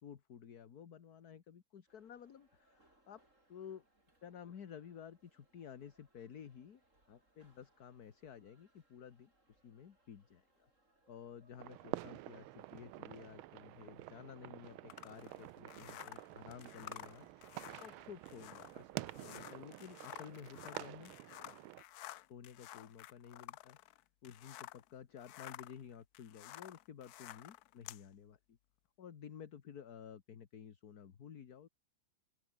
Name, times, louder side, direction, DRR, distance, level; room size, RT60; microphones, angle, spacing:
voice 1, 0.0-3.2 3.5-3.8 4.2-6.8 7.1-10.7 11.1-17.3 17.8-21.1 22.2-28.6 29.0-31.7, left 8 dB, 50° left, 1.8 m, -53 dB
sound 1, 1.9-19.6, right 1 dB, 35° right, 8.0 m, -73 dB
sound 2, 11.6-21.8, right 16 dB, 85° right, 1.5 m, -49 dB
sound 3, 14.9-24.9 25.2-28.0, left 14 dB, 85° left, 0.8 m, -52 dB
open air
omnidirectional pair, 2.3 m